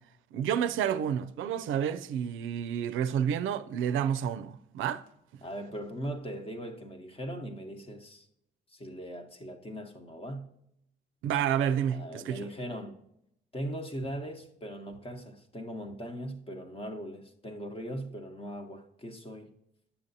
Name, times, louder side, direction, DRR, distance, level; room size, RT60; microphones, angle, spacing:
voice 1, 0.3-5.0 11.2-12.5, right 9 dB, 80° right, 0.4 m, -30 dB
voice 2, 5.4-8.3 8.7-10.5 11.9-13.0 13.5-19.5, equal, 30° left, 1.0 m, -39 dB
7.3 x 7.0 x 2.7 m
cardioid pair, 90°, 20 cm